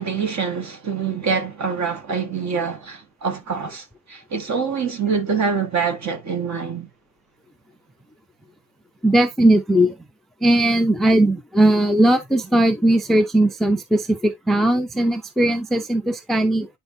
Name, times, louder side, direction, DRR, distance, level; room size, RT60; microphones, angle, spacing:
voice 1, 0.0-6.9, right 5 dB, 45° right, 1.6 m, -25 dB
voice 2, 9.0-10.0 10.4-16.7, right 1 dB, ahead, 0.4 m, -18 dB
9.7 x 4.4 x 2.6 m
cardioid pair, 160°, 40 cm